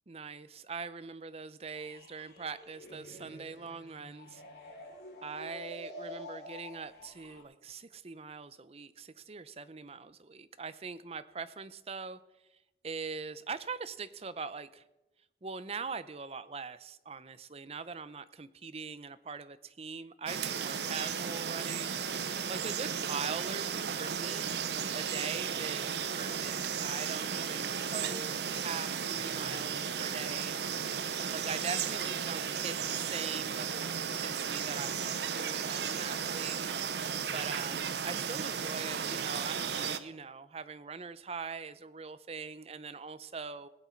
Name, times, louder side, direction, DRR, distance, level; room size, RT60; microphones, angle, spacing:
voice 1, 0.1-4.4 5.2-12.2 12.8-14.8 15.4-22.2 22.5-24.5 24.9-30.6 31.3-36.6 36.9-43.7, right 5 dB, 35° right, 14 dB, 0.6 m, -42 dB
sound 1, 1.7-7.4, left 1 dB, 60° left, 3.1 m, -48 dB
sound 2, 20.3-40.0, right 7 dB, 70° right, 0.7 m, -34 dB
19.5 x 8.3 x 4.4 m, 0.98 s
head